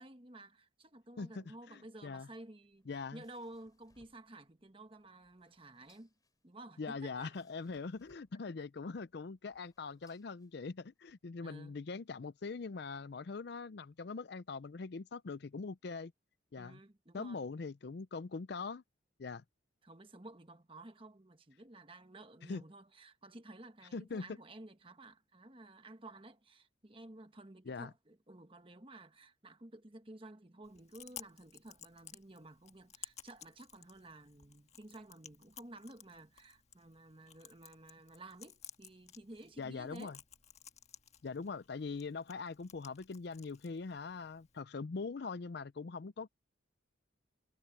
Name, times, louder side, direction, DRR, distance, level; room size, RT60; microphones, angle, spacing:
voice 1, 0.0-6.1 6.4-7.4 11.4-11.8 16.6-17.4 19.8-40.2, right 2 dB, 25° right, 1.3 m, -53 dB
voice 2, 1.2-2.3 2.9-3.2 6.8-16.1 16.5-16.8 17.1-18.8 19.2-19.4 22.4-22.6 23.9-24.3 27.7-27.9 39.6-40.2 41.2-46.3, left 4 dB, 55° left, 0.5 m, -42 dB
sound 1, 2.6-11.0, left 2 dB, 20° left, 5.6 m, -73 dB
Chewing mastication, 30.6-44.6, left 9 dB, 35° left, 1.6 m, -56 dB
head